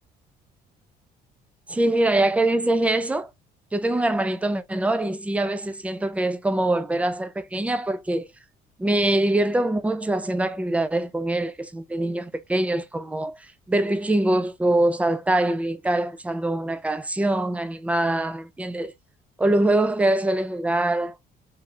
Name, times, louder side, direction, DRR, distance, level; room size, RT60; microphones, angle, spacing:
voice 1, 1.7-3.3 3.7-8.3 8.8-13.4 13.7-18.9 19.4-21.2, right 1 dB, 10° right, 0.5 m, -23 dB
3.6 x 3.3 x 2.6 m
cardioid pair, 110°, 17 cm